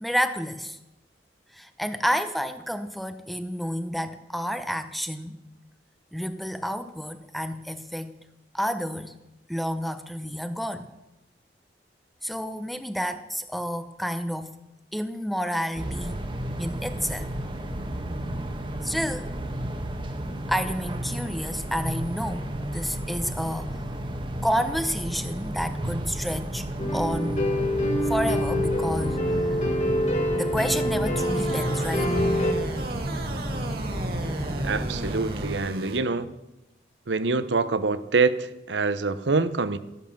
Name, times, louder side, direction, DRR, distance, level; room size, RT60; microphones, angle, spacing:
voice 1, 0.0-0.8 1.5-5.5 6.1-8.2 8.5-9.2 9.5-10.9 12.2-14.6 14.9-16.2 16.6-17.3 18.8-19.3 20.5-23.8 24.4-26.7 26.9-27.5 28.1-29.4 30.3-32.2, equal, ahead, 0.8 m, -30 dB
sound 1, 15.7-35.6, right 1 dB, 30° right, 1.3 m, -32 dB
sound 2, 26.8-32.5, left 1 dB, 40° left, 2.3 m, -26 dB
sound 3, 31.2-36.0, right 2 dB, 55° right, 1.8 m, -36 dB
voice 2, 34.6-36.3 37.1-39.8, right 4 dB, 90° right, 0.8 m, -25 dB
14.0 x 11.0 x 7.2 m
head